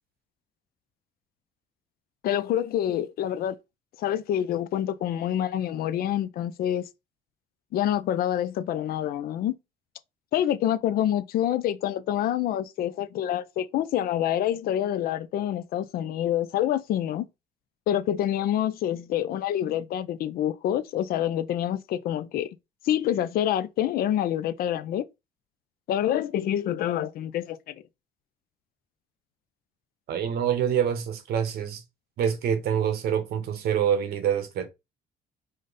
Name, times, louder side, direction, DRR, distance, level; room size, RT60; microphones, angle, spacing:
voice 1, 2.2-3.6 4.0-6.8 7.7-9.5 10.3-17.3 17.9-22.5 22.8-25.0 25.9-27.7, left 11 dB, 60° left, 0.4 m, -27 dB
voice 2, 30.1-31.8 32.2-34.7, right 8 dB, 65° right, 0.9 m, -26 dB
5.0 x 2.1 x 3.9 m
cardioid pair, 110°, 17 cm